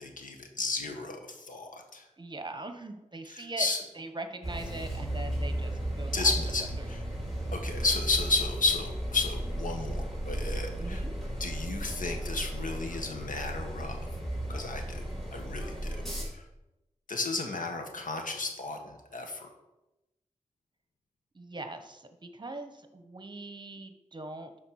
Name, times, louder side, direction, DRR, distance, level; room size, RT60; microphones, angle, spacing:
voice 1, 0.0-2.0 3.3-3.8 6.1-6.6 6.9-7.0 7.5-11.0 11.4-14.0 14.5-15.0 15.3-16.0 16.3-16.4 17.1-19.5, left 3 dB, 80° left, 4 dB, 1.6 m, -32 dB
voice 2, 2.2-3.7 3.9-6.3 6.8-6.9 10.8-11.1 21.3-24.5, right 2 dB, 35° right, 7 dB, 1.0 m, -41 dB
sound 1, 4.4-16.2, right 1 dB, 5° left, 3.2 m, -35 dB
12.0 x 4.4 x 6.4 m, 0.98 s
wide cardioid pair, 90°, 14 cm